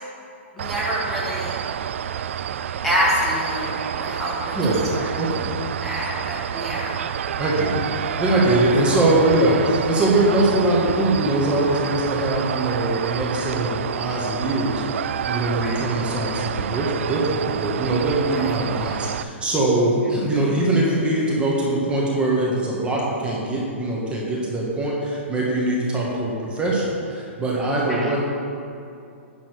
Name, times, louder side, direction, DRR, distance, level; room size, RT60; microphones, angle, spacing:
voice 1, 0.6-1.5 2.8-4.6 4.9-5.0 5.8-7.0 15.6-15.8 18.3-18.4 27.8-28.1, equal, 5° left, -7 dB, 1.7 m, -26 dB
sound 1, 0.6-19.2, right 9 dB, 70° right, 0.4 m, -28 dB
voice 2, 4.5-5.6 7.4-28.2, right 1 dB, 15° right, -4 dB, 1.8 m, -22 dB
11.0 x 4.0 x 6.8 m, 2.5 s
hypercardioid pair, 130°, 7 cm